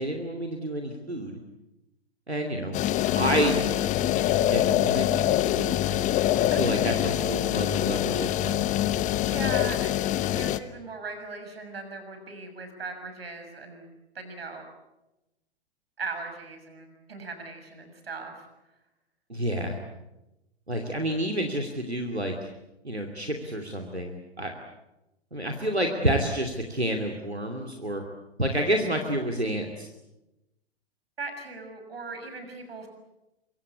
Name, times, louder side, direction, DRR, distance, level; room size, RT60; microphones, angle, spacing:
voice 1, 0.0-1.3 2.3-2.8 3.2-3.7 4.4-5.8 6.4-8.6 19.3-19.8 20.7-22.5 22.8-24.5 25.3-28.0 28.4-29.9, right 1 dB, 90° right, 3 dB, 2.7 m, -29 dB
sound 1, 2.7-10.6, left 13 dB, 25° left, 1.1 m, -25 dB
voice 2, 6.5-6.9 9.2-10.0 10.3-13.9 14.1-14.6 16.0-18.5 31.2-32.9, right 3 dB, 70° right, 7 dB, 6.6 m, -39 dB
25.0 x 24.0 x 8.4 m, 0.96 s
figure-of-eight pair, 105°, 31 cm